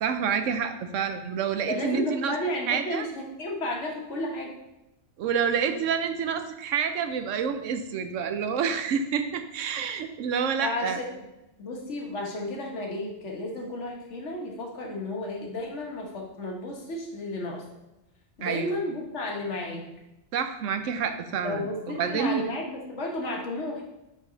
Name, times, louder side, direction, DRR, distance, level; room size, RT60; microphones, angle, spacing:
voice 1, 0.0-2.4 2.7-3.1 5.2-11.0 18.4-18.8 20.3-22.4, right 7 dB, 85° right, 8 dB, 1.0 m, -28 dB
voice 2, 1.7-4.5 10.6-11.2 11.6-17.6 18.4-19.9 21.4-23.8, left 1 dB, 70° left, 0 dB, 1.5 m, -33 dB
6.1 x 5.3 x 3.9 m, 0.94 s
omnidirectional pair, 1.3 m